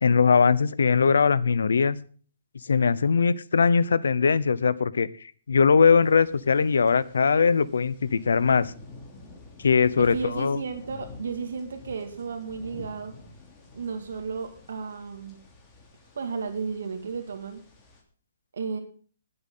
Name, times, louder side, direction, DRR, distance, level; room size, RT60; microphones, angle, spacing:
voice 1, 0.0-2.0 2.6-5.1 5.5-8.7 9.6-10.6, left 5 dB, 85° left, 18 dB, 0.8 m, -21 dB
sound 1, 6.0-18.0, left 3 dB, 20° left, 3.0 m, -49 dB
voice 2, 10.0-13.1 13.7-15.4 16.2-17.6 18.5-18.8, right 5 dB, 75° right, 5 dB, 2.2 m, -33 dB
19.5 x 8.0 x 3.8 m, 0.42 s
hypercardioid pair, 155°, 0 cm